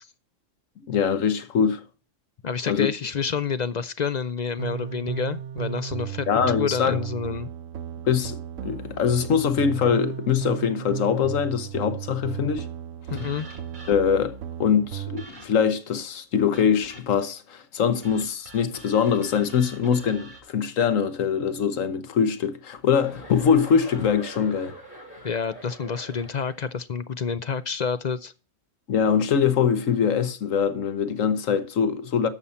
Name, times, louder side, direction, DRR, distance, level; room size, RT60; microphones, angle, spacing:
voice 1, 0.9-1.8 2.7-2.9 6.3-7.0 8.0-12.7 13.9-24.8 28.9-32.3, left 7 dB, 85° left, 1.4 m, -23 dB
voice 2, 2.4-6.3 6.6-7.5 13.1-13.5 25.2-28.3, left 6 dB, 50° left, 0.5 m, -28 dB
sound 1, 4.6-15.2, right 9 dB, 80° right, 1.1 m, -35 dB
sound 2, 13.2-14.3 15.2-15.8 16.5-17.3 18.0-20.4, right 2 dB, 40° right, 2.1 m, -46 dB
Chuckle chortle, 23.0-26.7, right 1 dB, 30° left, 5.3 m, -43 dB
11.5 x 7.2 x 4.1 m
omnidirectional pair, 1.3 m